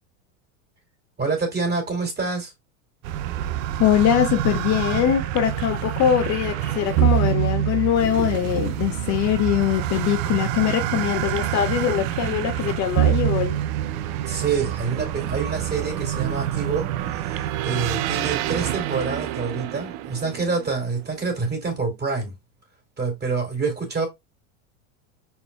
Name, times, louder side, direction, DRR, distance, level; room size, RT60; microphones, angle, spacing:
voice 1, 1.2-2.5 14.3-22.3 23.0-24.1, right 4 dB, 25° right, 2.6 m, -27 dB
sound 1, 3.0-21.0, right 12 dB, 60° right, 0.6 m, -26 dB
voice 2, 3.8-13.6, left 10 dB, 45° left, 0.7 m, -22 dB
5.3 x 4.4 x 2.2 m
supercardioid pair, 120°, 41 cm